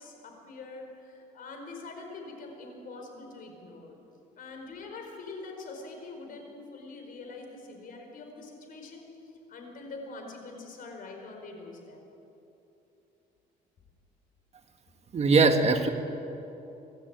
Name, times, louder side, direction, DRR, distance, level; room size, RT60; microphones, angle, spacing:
voice 1, 0.0-4.0 4.3-9.1 9.5-12.0, left 3 dB, 55° left, 3 dB, 4.8 m, -44 dB
voice 2, 15.1-15.9, right 3 dB, 40° right, 6 dB, 1.6 m, -21 dB
24.5 x 13.0 x 8.9 m, 3.0 s
cardioid pair, 110°, 17 cm